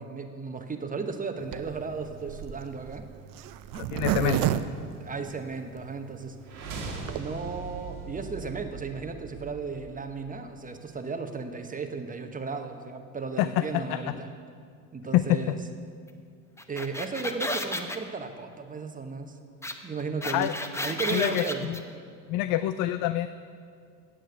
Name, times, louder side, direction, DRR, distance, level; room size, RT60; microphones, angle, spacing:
voice 1, 0.0-3.1 4.2-4.5 5.0-6.4 7.1-14.3 14.9-15.6 16.7-19.3 19.8-20.5 20.8-21.7, right 4 dB, 20° right, 7 dB, 1.0 m, -35 dB
Zipper (clothing), 1.5-5.8 6.3-6.4 6.5-6.6 6.9-7.2, right 13 dB, 50° right, 0.6 m, -30 dB
voice 2, 3.7-4.5 13.4-14.0 15.1-15.6 20.2-20.5 21.1-21.8 22.3-23.3, left 14 dB, 50° left, 13 dB, 0.5 m, -26 dB
sound 1, 6.4-10.4, right 4 dB, 85° right, 1.7 m, -40 dB
sound 2, 16.6-18.0 19.6-19.7 20.0-21.8, left 1 dB, 5° left, 0.8 m, -32 dB
9.2 x 7.6 x 7.8 m, 2.3 s
hypercardioid pair, 75°, 43 cm